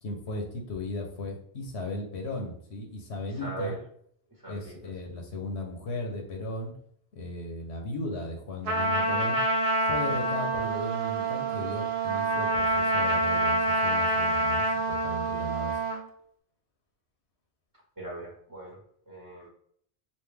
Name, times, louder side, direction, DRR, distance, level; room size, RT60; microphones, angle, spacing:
voice 1, 0.0-3.8 4.5-6.7 7.1-9.4 9.9-15.8, left 1 dB, 90° left, 2 dB, 1.2 m, -36 dB
voice 2, 3.3-3.8 4.4-4.8 18.0-18.8 19.1-19.5, right 2 dB, 20° right, -5 dB, 1.2 m, -39 dB
Trumpet, 8.7-16.0, right 2 dB, 70° right, 0.9 m, -27 dB
5.4 x 2.5 x 3.4 m, 0.63 s
omnidirectional pair, 1.1 m